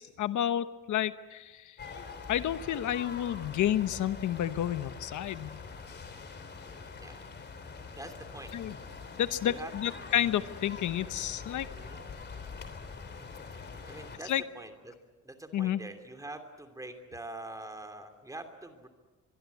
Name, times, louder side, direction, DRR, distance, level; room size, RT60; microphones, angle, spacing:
voice 1, 0.0-1.8 2.3-5.6 8.5-8.7 9.2-11.7 14.3-14.4 15.5-15.8, left 11 dB, 80° left, 12 dB, 1.0 m, -30 dB
sound 1, 1.8-14.2, left 5 dB, 35° left, 3.2 m, -44 dB
voice 2, 7.9-8.5 9.4-9.9 11.7-12.0 13.9-14.9 15.2-18.9, right 2 dB, 10° right, 7 dB, 2.8 m, -45 dB
23.5 x 23.5 x 8.4 m, 1.2 s
wide cardioid pair, 165°, 29 cm